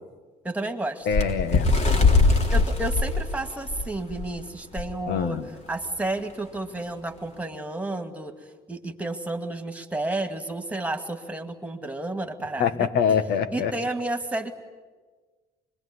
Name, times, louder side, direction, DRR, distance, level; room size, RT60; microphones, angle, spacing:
voice 1, 0.4-1.1 2.3-5.4 5.7-8.3 8.7-12.9 13.5-14.5, right 2 dB, 10° right, 6 dB, 2.3 m, -31 dB
voice 2, 1.1-1.7 5.1-5.4 12.6-13.7, left 7 dB, 75° left, 12 dB, 1.7 m, -24 dB
Bird, 1.1-4.3 4.8-4.9 5.2-5.5 6.2-6.3, left 3 dB, 40° left, 3.2 m, -21 dB
25.5 x 22.5 x 9.8 m, 1.4 s
cardioid pair, 110°, 17 cm